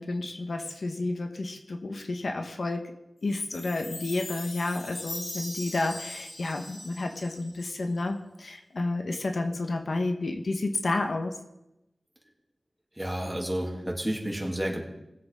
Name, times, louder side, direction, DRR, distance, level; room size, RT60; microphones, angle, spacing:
voice 1, 0.0-2.9 3.2-11.3, left 2 dB, 70° left, 5 dB, 1.1 m, -31 dB
Chime, 3.4-7.8, left 1 dB, 55° left, 1.8 m, -41 dB
voice 2, 12.9-14.9, right 1 dB, 10° right, -1 dB, 2.7 m, -31 dB
20.0 x 7.9 x 3.6 m, 0.91 s
wide cardioid pair, 80°, 0 cm